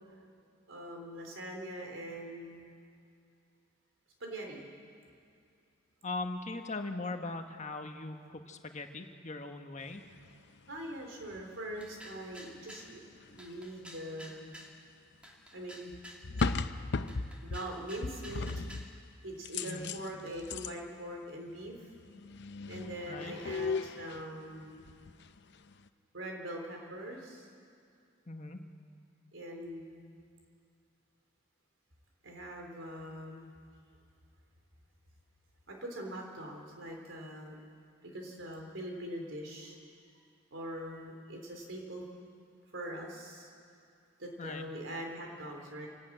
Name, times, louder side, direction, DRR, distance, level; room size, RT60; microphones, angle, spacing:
voice 1, 0.7-2.8 4.2-4.6 10.7-14.6 15.5-15.9 17.4-18.5 19.2-21.7 22.7-24.8 26.1-27.5 29.3-30.0 32.2-33.5 35.7-37.5 38.0-39.8 40.5-42.0 42.7-43.5 44.2-45.9, right 1 dB, 80° right, 1 dB, 3.7 m, -42 dB
voice 2, 6.0-10.0 19.6-19.9 23.1-23.3 28.3-28.6 44.4-44.6, left 3 dB, 40° left, 5 dB, 1.2 m, -40 dB
sound 1, 10.1-10.3 11.2-11.4 11.7-13.5 15.9-17.7 18.0-19.0 19.4-20.8 21.7-21.8 22.0-24.3 24.6-25.4 25.7-25.9, left 4 dB, 60° left, 0.6 m, -37 dB
sound 2, 11.8-12.9 13.4-14.8 15.2-16.6 17.1-18.9, equal, 5° right, 2.1 m, -51 dB
26.0 x 12.0 x 9.0 m, 2.4 s
head